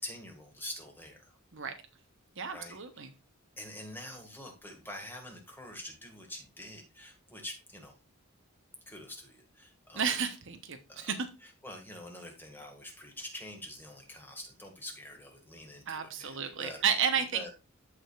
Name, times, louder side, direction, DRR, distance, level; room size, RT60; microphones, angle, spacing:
voice 1, 0.0-1.3 2.5-2.8 3.6-7.9 8.9-10.1 10.9-11.1 11.4-16.9 17.3-17.5, left 1 dB, 10° left, 2 dB, 1.8 m, -45 dB
voice 2, 2.4-3.1 9.9-11.3 15.9-17.5, right 7 dB, 60° right, 7 dB, 1.0 m, -32 dB
14.5 x 5.0 x 2.4 m, 0.28 s
head